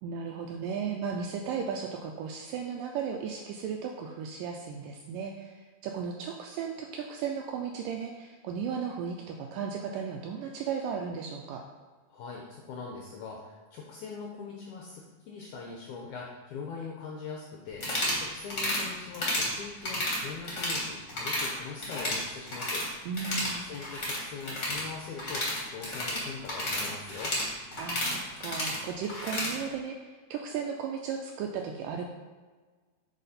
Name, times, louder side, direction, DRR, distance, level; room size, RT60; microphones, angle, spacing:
voice 1, 0.0-11.6 23.1-23.6 27.8-32.0, right 6 dB, 85° right, 2 dB, 1.9 m, -35 dB
voice 2, 12.1-17.8 18.2-22.9 23.7-27.3, left 5 dB, 80° left, -1 dB, 1.7 m, -42 dB
sound 1, 17.7-18.2 18.5-18.8 19.1-19.5 19.8-20.8 21.1-21.5 21.8-22.9 23.1-29.5, left 1 dB, 35° left, 1.2 m, -32 dB
9.0 x 4.3 x 4.2 m, 1.4 s
omnidirectional pair, 4.3 m